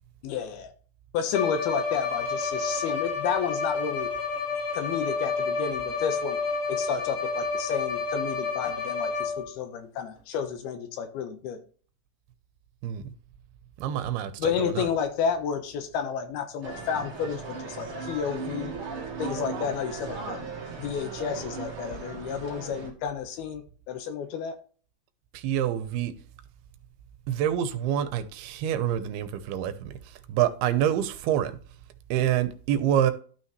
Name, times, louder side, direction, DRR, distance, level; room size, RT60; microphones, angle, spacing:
voice 1, 0.2-0.7 1.1-4.1 4.7-6.4 6.7-11.6 14.4-18.8 19.2-20.4 20.8-24.6, left 7 dB, 80° left, 3.0 m, -31 dB
Bowed string instrument, 1.3-9.6, left 4 dB, 65° left, 4.2 m, -30 dB
voice 2, 13.8-14.9 25.3-26.1 27.3-30.0 30.3-31.5 32.1-33.1, right 10 dB, 90° right, 2.7 m, -26 dB
sound 1, 16.6-22.9, right 4 dB, 45° right, 1.9 m, -37 dB
12.5 x 5.7 x 3.1 m
omnidirectional pair, 4.5 m